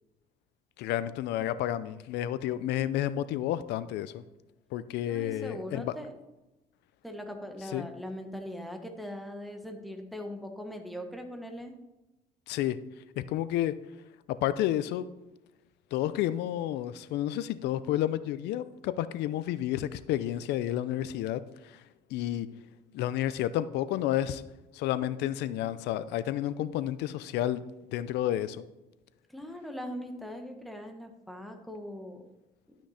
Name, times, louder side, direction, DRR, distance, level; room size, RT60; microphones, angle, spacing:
voice 1, 0.8-4.2 4.7-5.9 7.7-7.9 12.5-12.8 13.2-13.8 14.3-15.1 15.9-21.8 22.1-22.5 22.9-24.4 24.7-27.6 27.9-28.7, left 12 dB, 85° left, 15 dB, 0.5 m, -30 dB
voice 2, 5.1-6.1 7.0-11.8 29.3-32.2, equal, ahead, 3 dB, 1.3 m, -40 dB
11.5 x 6.0 x 4.3 m, 0.99 s
cardioid pair, 110°, 17 cm